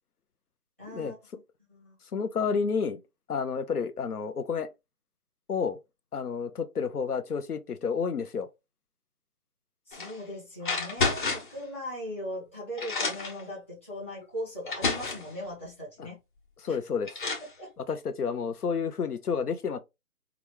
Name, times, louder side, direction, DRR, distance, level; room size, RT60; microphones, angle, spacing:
voice 1, 0.8-1.1 1.7-1.9 9.9-16.2 16.7-16.8 17.6-17.7, equal, 10° left, 0.7 m, -39 dB
voice 2, 2.1-3.0 3.3-4.7 5.5-5.8 6.1-8.5 16.0-16.1 16.6-17.2 17.8-19.8, left 6 dB, 75° left, 0.7 m, -30 dB
sound 1, 9.9-10.2 10.6-11.6 12.4-12.5 12.8-13.4 14.2-14.3 14.7-15.3 16.6-16.7 17.1-17.5, left 4 dB, 30° left, 1.1 m, -30 dB
4.9 x 2.3 x 3.2 m
figure-of-eight pair, 155°, 46 cm